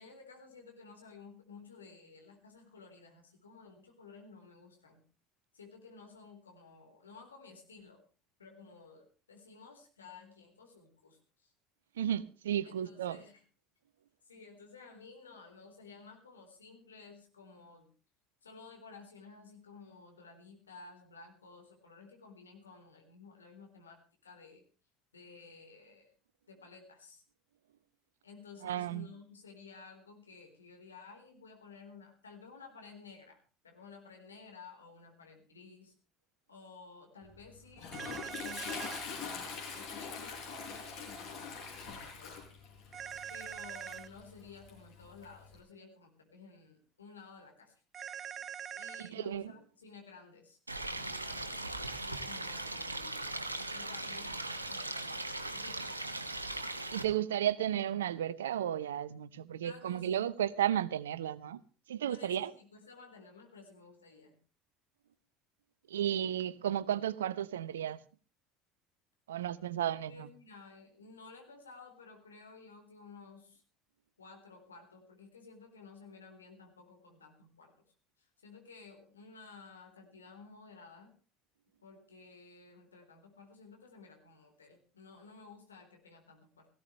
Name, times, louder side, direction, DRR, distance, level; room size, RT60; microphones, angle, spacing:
voice 1, 0.0-5.0 5.5-8.0 8.4-11.5 12.6-13.4 14.2-17.9 18.4-24.6 25.1-26.1 26.5-27.2 28.2-35.9 36.5-42.5 43.3-47.8 48.7-50.6 50.9-56.0 59.6-60.3 62.0-64.4 70.1-73.6 74.2-77.7 78.2-81.1 81.8-86.7, left 4 dB, 80° left, 3.9 m, -54 dB
voice 2, 12.0-13.2 28.6-29.1 49.0-49.4 56.9-61.6 61.9-62.5 65.9-68.0 69.3-70.3, right 10 dB, 70° right, 0.8 m, -33 dB
Toilet flush, 37.2-45.6, left 5 dB, 55° left, 7.3 m, -44 dB
sound 1, 37.9-39.1 42.9-44.1 47.9-49.1, right 9 dB, 35° right, 0.7 m, -43 dB
Stream, 50.7-57.0, right 2 dB, 85° right, 1.2 m, -39 dB
18.0 x 16.0 x 3.2 m
figure-of-eight pair, 70°, 0 cm